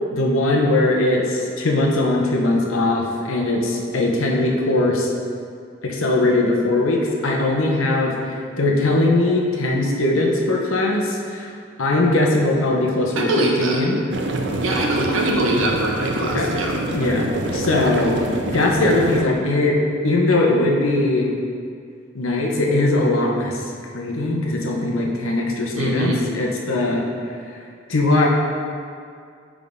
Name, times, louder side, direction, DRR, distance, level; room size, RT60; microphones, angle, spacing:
voice 1, 0.1-5.1 5.8-11.5 11.8-14.0 16.3-16.5 16.9-19.8 20.0-21.3 22.1-23.6 23.9-27.0 27.9-28.3, left 2 dB, 85° left, -1 dB, 0.9 m, -20 dB
voice 2, 13.1-13.8 14.6-16.8 25.7-26.2, right 1 dB, 80° right, 0 dB, 1.0 m, -22 dB
sound 1, 14.1-19.2, right 1 dB, 55° right, 0.5 m, -26 dB
9.3 x 3.7 x 3.7 m, 2.2 s
head